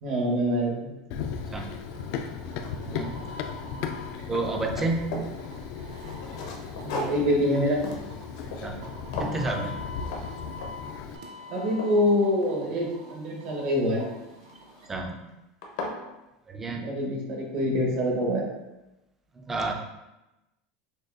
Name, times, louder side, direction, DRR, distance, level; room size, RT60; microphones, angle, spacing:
voice 1, 0.0-0.9 6.8-7.8 11.5-14.1 16.7-18.5, left 1 dB, 55° right, -2 dB, 1.2 m, -25 dB
Run, 1.1-11.2, left 6 dB, 55° left, 0.3 m, -37 dB
sound 1, 1.3-14.9, left 1 dB, 75° right, 0.7 m, -46 dB
voice 2, 1.4-1.7 2.8-3.2 4.3-5.2 8.5-8.8 9.2-9.8 14.9-15.2 16.5-16.8 19.4-19.7, right 3 dB, 10° right, 3 dB, 0.4 m, -30 dB
sound 2, 1.7-1.8 2.3-3.7 4.0-5.4 5.9-8.9 9.1-9.5 10.1-10.3 10.6-10.9 11.4-12.9 14.4-14.8 15.3-15.4 15.6-16.0, left 2 dB, 80° left, 0.7 m, -37 dB
6.2 x 2.3 x 2.4 m, 0.98 s
supercardioid pair, 150°, 2 cm